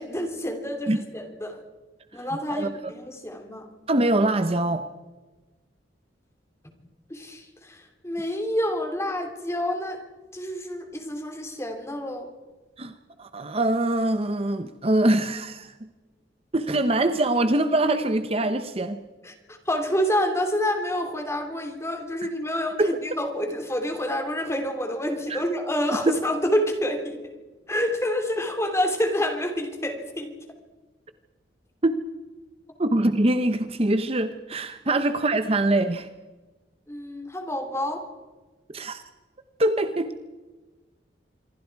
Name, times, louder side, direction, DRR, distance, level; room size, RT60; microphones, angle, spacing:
voice 1, 0.0-1.6 2.1-3.7 7.1-10.0 10.3-12.3 19.2-27.3 27.7-30.3 36.9-38.1, equal, 15° left, 5 dB, 2.9 m, -28 dB
voice 2, 2.5-2.9 3.9-4.8 12.8-12.9 13.2-15.9 16.5-19.0 22.8-22.9 25.3-25.4 26.1-26.2 31.8-32.0 32.8-36.1 38.7-39.0 39.6-40.1, right 1 dB, 35° right, 9 dB, 0.9 m, -23 dB
26.5 x 22.5 x 4.7 m, 1.2 s
head